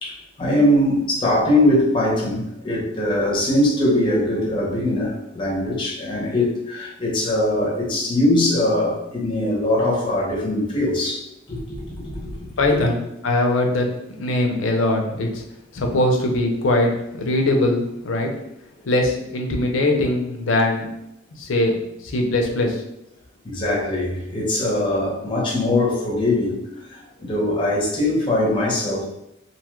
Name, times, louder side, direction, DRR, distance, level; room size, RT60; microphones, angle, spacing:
voice 1, 0.0-12.9 23.4-29.0, left 1 dB, 25° left, -4 dB, 0.7 m, -22 dB
voice 2, 12.6-13.0 13.2-13.9 14.2-15.4 15.7-18.3 18.9-20.9 21.4-21.7 22.0-22.8, left 1 dB, 75° left, 2 dB, 0.6 m, -21 dB
2.7 x 2.3 x 3.0 m, 0.84 s
head